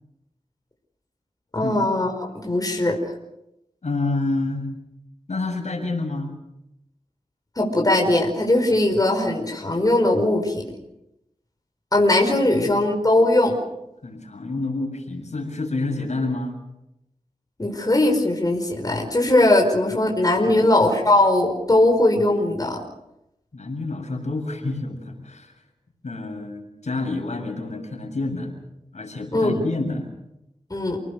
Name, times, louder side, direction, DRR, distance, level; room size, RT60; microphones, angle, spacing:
voice 1, 1.5-3.0 7.6-10.6 11.9-13.6 17.6-22.8 29.3-29.6 30.7-31.0, left 1 dB, 30° left, 1 dB, 5.2 m, -20 dB
voice 2, 3.8-4.7 5.3-6.3 12.5-12.7 14.0-16.6 20.5-20.7 23.5-25.5 26.0-28.5 28.9-30.1, left 2 dB, 65° left, 2 dB, 7.3 m, -28 dB
30.0 x 19.5 x 6.8 m, 0.87 s
wide cardioid pair, 55°, 12 cm